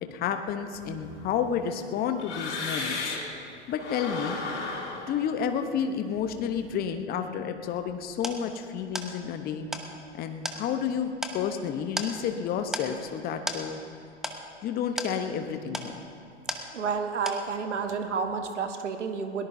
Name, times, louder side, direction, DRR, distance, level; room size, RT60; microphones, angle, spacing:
voice 1, 0.0-3.2 3.7-4.4 5.1-9.7 10.1-13.8 14.6-16.0, left 7 dB, 25° left, 7 dB, 1.0 m, -30 dB
sound 1, 0.7-3.4 3.7-6.8, left 3 dB, 75° left, 4.3 m, -36 dB
sound 2, 7.6-17.0 17.3-17.8, equal, ahead, 0.9 m, -37 dB
voice 2, 16.7-19.5, right 5 dB, 80° right, 6 dB, 1.3 m, -30 dB
21.5 x 18.5 x 2.7 m, 2.4 s
hypercardioid pair, 110°, 35 cm